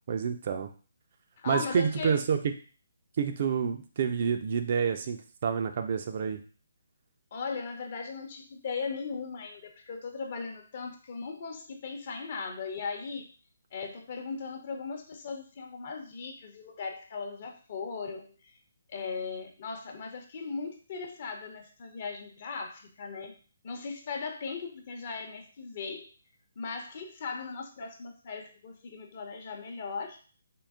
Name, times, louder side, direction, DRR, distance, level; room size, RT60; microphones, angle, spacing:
voice 1, 0.1-0.7 1.5-2.5 3.2-6.4, right 6 dB, 45° right, 6 dB, 0.4 m, -28 dB
voice 2, 1.4-2.2 7.3-13.3 13.7-18.6 18.9-23.4 23.6-26.1 26.6-30.2, left 4 dB, 45° left, 3 dB, 0.7 m, -38 dB
3.7 x 2.0 x 3.6 m, 0.38 s
figure-of-eight pair, 145°, 0 cm